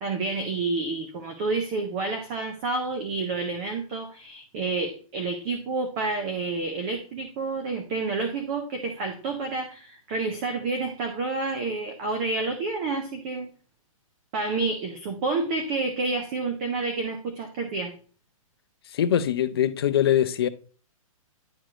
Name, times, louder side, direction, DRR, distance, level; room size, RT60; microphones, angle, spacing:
voice 1, 0.0-13.5 14.3-17.9, right 3 dB, 15° right, 0.4 m, -29 dB
voice 2, 18.9-20.5, left 10 dB, 45° left, 0.5 m, -22 dB
10.0 x 4.6 x 2.4 m
hypercardioid pair, 170°, 18 cm